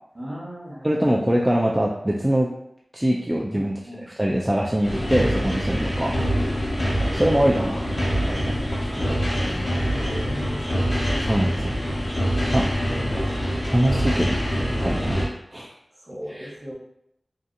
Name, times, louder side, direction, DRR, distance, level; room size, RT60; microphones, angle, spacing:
voice 1, 0.1-1.0 3.5-4.4 7.6-8.2 8.9-11.1 16.0-16.7, equal, 40° right, -5 dB, 1.0 m, -39 dB
voice 2, 0.8-2.5 2.9-3.7 4.2-6.2 7.1-7.8 8.1-9.1 11.3-11.8 12.5-12.7 13.7-14.4 14.8-15.2 15.5-15.7 16.3-16.5, right 1 dB, 20° right, -2 dB, 0.3 m, -23 dB
sound 1, 4.8-15.3, equal, 50° left, 1.1 m, -25 dB
2.7 x 2.4 x 2.5 m, 0.78 s
wide cardioid pair, 60°, 0 cm